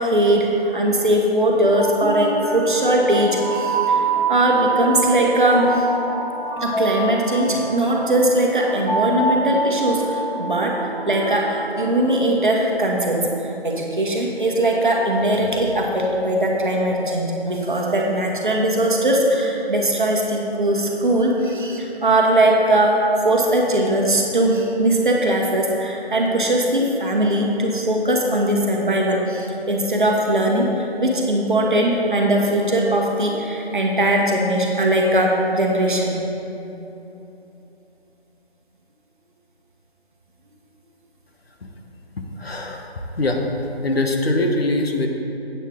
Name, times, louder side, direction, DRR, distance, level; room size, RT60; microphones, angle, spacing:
voice 1, 0.0-5.9 6.6-10.8 11.1-36.2, right 1 dB, 50° right, -1 dB, 1.2 m, -20 dB
sound 1, 1.6-12.7, right 3 dB, 85° left, 1.8 m, -26 dB
voice 2, 42.4-42.9 43.2-43.4 43.8-45.1, left 2 dB, 70° left, 2 dB, 1.1 m, -22 dB
8.2 x 7.7 x 3.6 m, 3.0 s
figure-of-eight pair, 175°, 32 cm